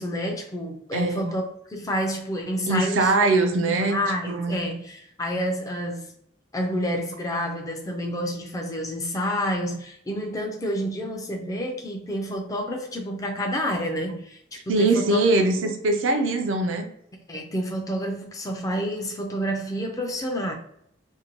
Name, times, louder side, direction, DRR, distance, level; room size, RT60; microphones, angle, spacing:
voice 1, 0.0-1.4 1.7-3.1 3.6-6.1 6.5-15.2 17.3-20.5, equal, 15° left, 0.4 m, -29 dB
voice 2, 0.9-1.3 2.7-4.0 4.3-4.6 14.7-16.8, right 2 dB, 75° right, 0.4 m, -22 dB
2.6 x 2.1 x 2.9 m
head